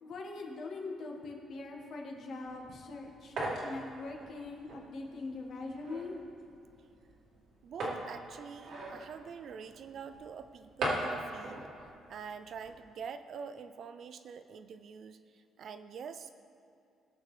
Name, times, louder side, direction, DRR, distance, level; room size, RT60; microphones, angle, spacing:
voice 1, 0.0-6.2, left 3 dB, 60° left, 1 dB, 1.5 m, -42 dB
sound 1, 2.5-12.9, right 1 dB, 75° right, 1.9 m, -41 dB
voice 2, 7.6-16.3, right 6 dB, 55° right, 10 dB, 0.5 m, -46 dB
17.5 x 6.4 x 3.3 m, 2.5 s
cardioid pair, 105°, 0 cm